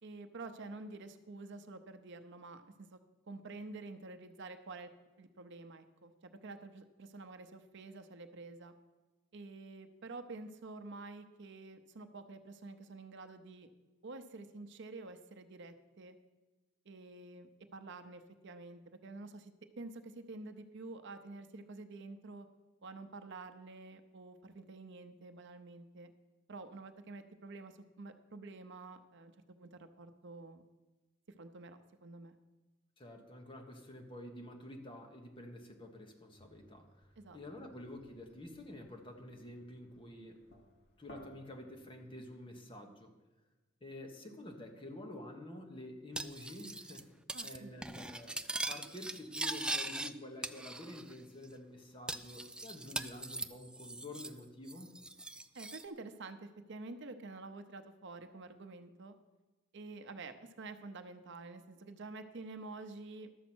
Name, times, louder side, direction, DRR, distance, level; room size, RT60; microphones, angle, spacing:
voice 1, 0.0-3.0 3.3-4.9 5.2-8.7 9.3-13.7 14.0-16.2 16.9-22.5 22.8-26.1 26.5-30.6 31.4-32.4 37.2-37.7 47.3-47.8 55.5-59.1 59.7-63.3, right 3 dB, 60° right, 8 dB, 0.7 m, -49 dB
voice 2, 33.0-37.1 37.3-40.4 41.0-43.1 43.8-47.1 47.4-48.4 48.7-55.0, left 1 dB, 25° left, 3 dB, 1.3 m, -49 dB
sound 1, 36.4-42.4, equal, 55° left, 1.3 m, -61 dB
Cutlery silverware, 46.2-47.0 47.3-47.6 47.8-50.1 50.4-51.1 51.4-51.5 52.1-54.4 54.7-55.8, right 2 dB, 5° right, 0.3 m, -41 dB
12.0 x 7.2 x 6.1 m, 1.2 s
head